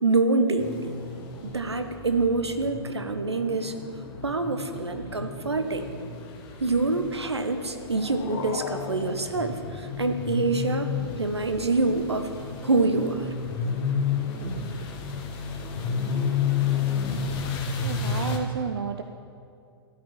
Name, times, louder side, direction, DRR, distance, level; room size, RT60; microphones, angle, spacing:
voice 1, 0.0-0.9 1.4-3.7 4.2-5.9 6.6-10.9 11.2-12.3 12.6-13.3, right 3 dB, 80° right, 7 dB, 0.9 m, -26 dB
sound 1, 0.6-18.4, left 5 dB, 30° left, 1.3 m, -32 dB
sound 2, 7.5-10.5, left 6 dB, 55° left, 0.9 m, -39 dB
voice 2, 17.8-19.0, right 6 dB, 60° right, 6 dB, 0.6 m, -31 dB
12.5 x 5.2 x 8.4 m, 2.4 s
figure-of-eight pair, 105°, 14 cm